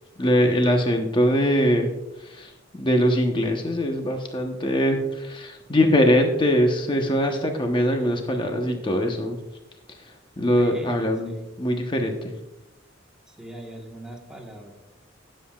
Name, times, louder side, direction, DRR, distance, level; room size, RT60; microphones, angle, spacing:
voice 1, 0.2-1.9 2.2-2.5 2.8-9.4 10.0-11.3 11.6-12.3, equal, 25° left, 3 dB, 1.0 m, -22 dB
voice 2, 10.6-11.5 13.3-14.7, equal, 5° right, 0 dB, 1.4 m, -39 dB
19.0 x 7.5 x 2.4 m, 0.94 s
head